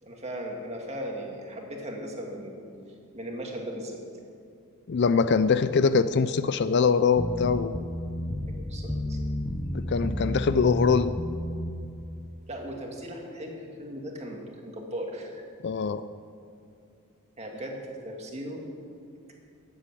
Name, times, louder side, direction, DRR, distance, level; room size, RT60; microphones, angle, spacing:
voice 1, 0.0-2.6 3.1-4.0 8.6-9.2 12.5-15.4 17.4-18.6, equal, 30° right, 0 dB, 2.0 m, -37 dB
voice 2, 4.9-7.7 9.7-11.1 15.6-16.0, left 5 dB, 50° left, 13 dB, 0.4 m, -23 dB
sound 1, 7.2-11.7, equal, 10° left, 0.6 m, -31 dB
13.0 x 8.3 x 8.5 m, 2.5 s
head